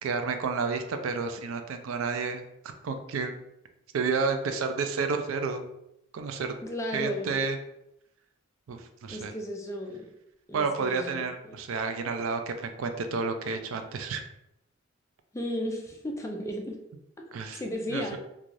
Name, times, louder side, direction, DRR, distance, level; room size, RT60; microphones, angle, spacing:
voice 1, 0.0-2.4 2.8-3.4 3.9-5.7 6.1-6.5 6.9-7.6 8.7-9.3 10.5-14.2 17.3-17.6 17.9-18.2, right 4 dB, 90° right, 7 dB, 0.4 m, -30 dB
voice 2, 6.6-7.4 9.1-10.1 10.5-11.6 15.3-16.8 17.5-18.2, equal, 15° left, 1 dB, 0.4 m, -34 dB
3.1 x 2.3 x 2.5 m, 0.81 s
head